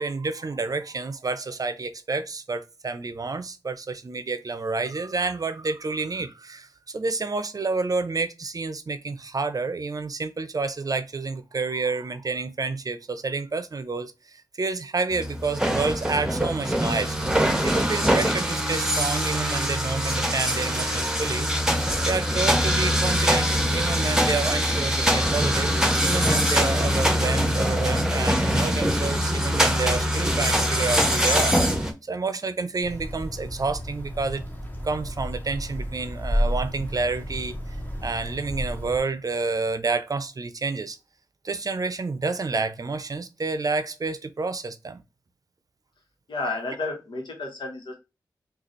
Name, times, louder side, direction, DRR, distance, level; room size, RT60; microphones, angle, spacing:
voice 1, 0.0-17.2 17.6-21.5 22.0-25.7 26.0-34.4 34.8-37.5 38.0-41.0 41.4-45.0, right 3 dB, 50° right, 0.5 m, -29 dB
sound 1, 15.1-31.9, equal, 10° right, 0.9 m, -23 dB
sound 2, 32.8-39.0, equal, 20° left, 1.0 m, -31 dB
voice 2, 46.3-47.9, left 3 dB, 90° left, 1.1 m, -31 dB
3.9 x 2.4 x 3.1 m
cardioid pair, 40°, 8 cm